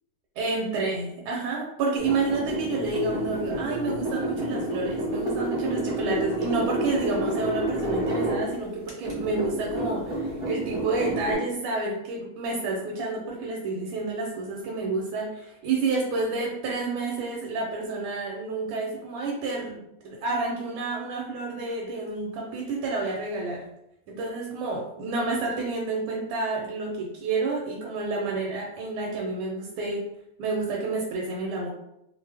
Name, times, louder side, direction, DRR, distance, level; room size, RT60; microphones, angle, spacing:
voice 1, 0.4-23.6 24.1-30.0 30.4-31.7, right 3 dB, 85° right, -1 dB, 1.4 m, -29 dB
sound 1, 2.0-8.5 8.9-11.3, right 1 dB, 30° right, 0.5 m, -29 dB
3.3 x 2.0 x 3.2 m, 0.83 s
omnidirectional pair, 2.2 m